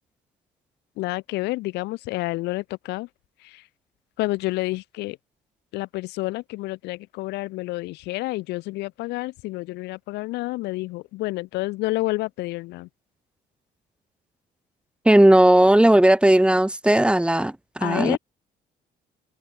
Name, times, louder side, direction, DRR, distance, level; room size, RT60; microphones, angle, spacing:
voice 1, 1.0-3.1 3.4-3.6 4.2-5.2 5.7-12.9 17.8-18.2, left 20 dB, 90° left, 4.1 m, -29 dB
voice 2, 15.1-18.2, right 1 dB, 5° right, 2.2 m, -16 dB
open air
cardioid pair, 110°, 17 cm